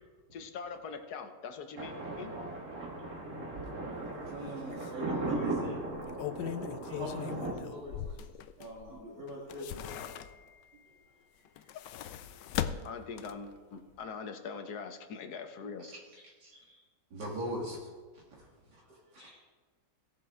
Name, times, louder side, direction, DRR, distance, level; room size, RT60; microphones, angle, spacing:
voice 1, 0.3-2.3 12.8-15.9, left 5 dB, 65° left, 7 dB, 1.4 m, -42 dB
Thunder, 1.8-7.5, right 2 dB, 55° right, 2.5 m, -37 dB
sound 1, 4.3-4.4 4.8-4.9 5.8-8.9 9.3-10.6 11.5-13.6 13.9-14.0, left 11 dB, 85° left, 1.2 m, -39 dB
voice 2, 4.3-5.8 6.9-8.0 8.6-10.1 11.6-11.9 16.5-16.8 19.1-19.3, equal, 40° right, -10 dB, 3.3 m, -44 dB
voice 3, 7.7-8.2 8.8-9.0 12.2-12.3 15.9-16.0 16.4-16.5 17.1-17.9 18.1-19.3, equal, 70° right, -3 dB, 2.4 m, -42 dB
17.5 x 7.7 x 3.6 m, 1.4 s
omnidirectional pair, 1.9 m